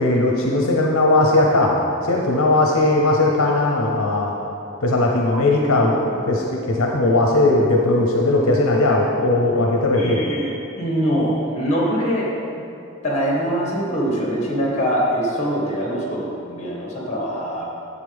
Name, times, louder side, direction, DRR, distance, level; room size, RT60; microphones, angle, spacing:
voice 1, 0.0-4.3 4.8-10.2, left 2 dB, 70° left, 0 dB, 0.8 m, -18 dB
voice 2, 9.9-12.3 13.0-17.6, equal, 30° left, -4 dB, 1.8 m, -23 dB
9.9 x 7.2 x 3.5 m, 2.7 s
head